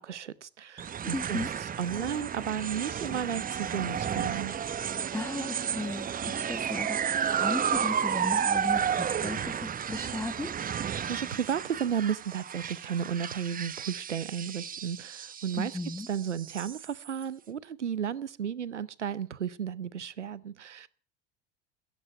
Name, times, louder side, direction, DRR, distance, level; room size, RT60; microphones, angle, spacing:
voice 1, 0.0-1.4 1.8-4.5 11.1-15.7 16.1-20.9, right 8 dB, 85° right, 0.7 m, -33 dB
sound 1, 0.8-17.2, right 8 dB, 25° right, 1.0 m, -32 dB
voice 2, 1.1-1.5 5.1-10.6 15.5-16.1, left 2 dB, 5° left, 1.2 m, -36 dB
17.0 x 14.0 x 5.8 m
figure-of-eight pair, 70°, 34 cm